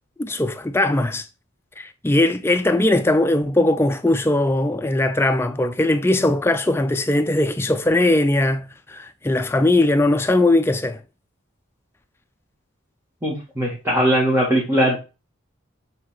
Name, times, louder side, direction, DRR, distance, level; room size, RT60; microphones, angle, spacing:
voice 1, 0.2-1.3 1.8-11.0, left 2 dB, 10° left, 0.4 m, -20 dB
voice 2, 13.2-15.0, equal, 10° right, 1.8 m, -20 dB
7.8 x 3.9 x 4.3 m
head